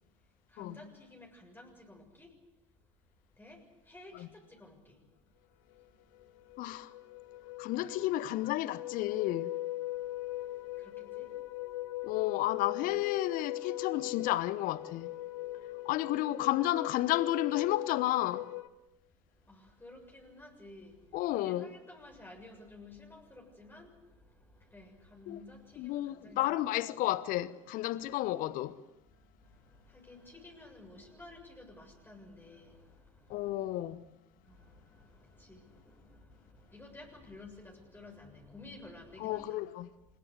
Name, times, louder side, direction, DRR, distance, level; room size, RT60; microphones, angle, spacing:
voice 1, 0.2-2.4 3.3-5.0 7.8-7.9 10.3-11.4 12.0-12.1 12.6-13.0 19.3-26.9 29.2-33.5 34.4-39.6, left 2 dB, 10° left, 7.0 m, -53 dB
sound 1, 5.8-5.9 6.2-18.7, left 16 dB, 70° left, 1.8 m, -40 dB
voice 2, 6.6-6.9 7.6-9.5 12.0-15.1 15.8-18.5 21.1-21.7 25.3-25.4 25.8-28.8 33.3-34.0 39.2-39.9, left 15 dB, 55° left, 1.0 m, -32 dB
25.5 x 21.0 x 8.1 m
figure-of-eight pair, 70°, 17 cm